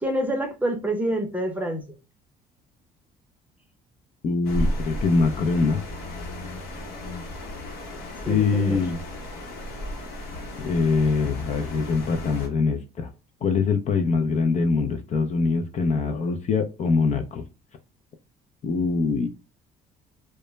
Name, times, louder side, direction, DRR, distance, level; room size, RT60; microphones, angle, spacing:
voice 1, 0.0-1.8 8.3-8.8, right 1 dB, 10° right, 0.7 m, -27 dB
voice 2, 4.2-5.8 8.3-9.0 10.6-13.1 13.4-17.4 18.6-19.3, left 4 dB, 45° left, 0.5 m, -23 dB
sound 1, 4.4-12.5, left 1 dB, 70° left, 0.9 m, -34 dB
2.2 x 2.0 x 3.0 m
cardioid pair, 110°, 17 cm